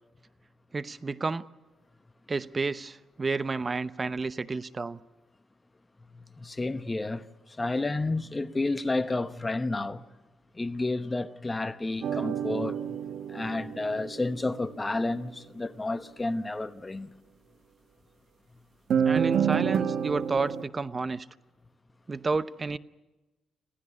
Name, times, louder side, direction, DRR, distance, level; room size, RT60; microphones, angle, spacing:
voice 1, 0.7-1.4 2.3-5.0 19.0-21.3 22.1-22.8, right 4 dB, 30° right, 0.7 m, -31 dB
voice 2, 6.1-10.0 10.5-13.0 13.3-17.1, left 2 dB, 20° left, 1.0 m, -31 dB
sound 1, 12.0-14.6 18.9-20.6, right 7 dB, 65° right, 1.5 m, -28 dB
26.5 x 15.5 x 9.7 m
cardioid pair, 90°, 0 cm